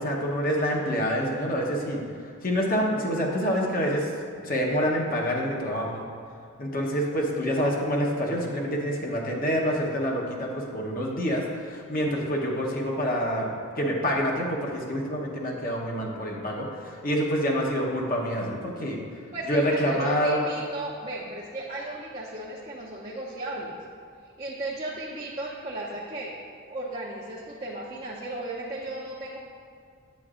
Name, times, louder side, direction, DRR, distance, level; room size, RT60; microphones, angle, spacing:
voice 1, 0.0-2.0 2.4-4.1 4.4-6.0 6.6-19.0 19.5-20.4, equal, 45° left, -2 dB, 0.9 m, -27 dB
voice 2, 19.3-23.8 24.4-26.4 26.7-29.4, right 2 dB, 30° right, -5 dB, 0.6 m, -35 dB
8.2 x 7.7 x 2.4 m, 2.2 s
head